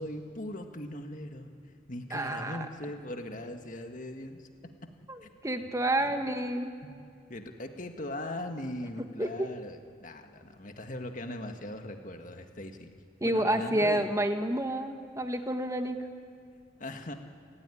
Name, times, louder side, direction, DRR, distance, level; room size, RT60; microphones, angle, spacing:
voice 1, 0.0-4.5 5.2-5.3 6.0-6.2 6.8-6.9 7.3-12.9 13.2-14.1 16.8-17.1, left 1 dB, 40° left, 5 dB, 1.8 m, -40 dB
voice 2, 2.1-2.7 5.1-6.7 9.2-9.5 13.2-16.0, right 1 dB, 15° right, 6 dB, 1.4 m, -29 dB
29.5 x 15.0 x 10.0 m, 2.3 s
head